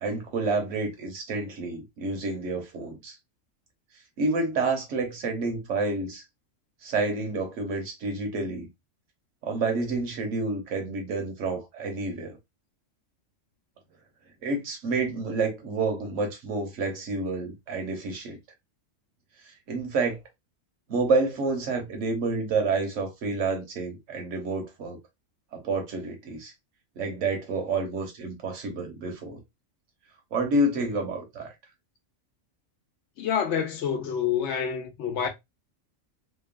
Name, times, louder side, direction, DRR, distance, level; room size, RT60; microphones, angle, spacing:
voice 1, 0.0-3.1 4.2-6.2 6.8-8.7 9.4-12.4 14.4-18.4 19.4-20.2 20.9-25.0 25.5-26.5 27.0-29.4 30.3-31.5, right 3 dB, 70° right, 1.2 m, -29 dB
voice 2, 33.2-35.3, left 8 dB, 65° left, 0.9 m, -27 dB
2.9 x 2.2 x 2.3 m
omnidirectional pair, 1.4 m